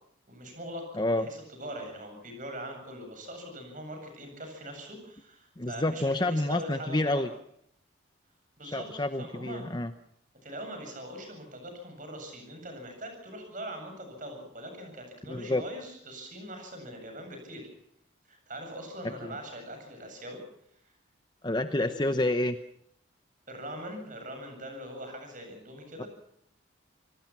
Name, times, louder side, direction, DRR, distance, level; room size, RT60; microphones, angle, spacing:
voice 1, 0.3-7.3 8.6-9.6 10.4-17.7 18.3-20.4 21.8-22.2 23.5-26.1, right 1 dB, 40° right, 5 dB, 7.9 m, -42 dB
voice 2, 5.6-7.3 8.6-9.9 15.3-15.6 19.2-19.3 21.4-22.6 26.0-26.1, left 1 dB, 20° left, 9 dB, 0.8 m, -28 dB
27.5 x 19.0 x 6.0 m, 0.69 s
head